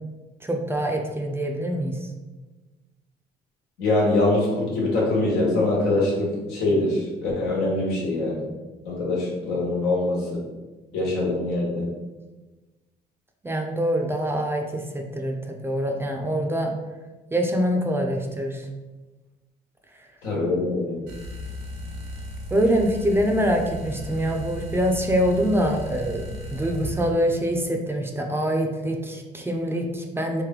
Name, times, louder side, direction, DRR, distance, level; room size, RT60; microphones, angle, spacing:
voice 1, 0.4-2.0 13.4-16.7 17.3-18.7 22.5-26.2 26.5-30.4, equal, 15° right, 2 dB, 0.4 m, -24 dB
voice 2, 3.8-8.4 8.8-10.4 10.9-11.9 20.2-21.0, left 2 dB, 90° left, -4 dB, 1.4 m, -23 dB
sound 1, 21.1-27.1, equal, 90° right, 0.8 m, -36 dB
3.3 x 2.6 x 3.7 m, 1.2 s
cardioid pair, 110°, 17 cm